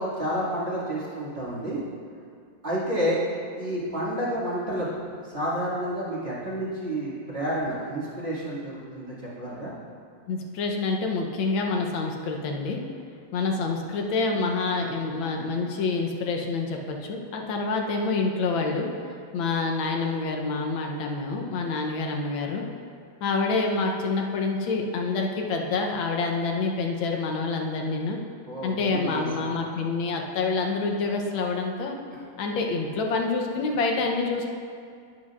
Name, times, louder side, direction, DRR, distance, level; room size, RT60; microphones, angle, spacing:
voice 1, 0.0-1.8 2.6-3.2 3.6-9.7 28.5-29.5, equal, 30° right, -9 dB, 2.4 m, -30 dB
voice 2, 10.3-12.8 13.3-18.9 19.3-22.7 23.2-28.2 28.6-32.0 32.4-34.5, left 3 dB, 90° left, 2 dB, 1.7 m, -27 dB
10.5 x 10.0 x 2.5 m, 2.2 s
omnidirectional pair, 2.1 m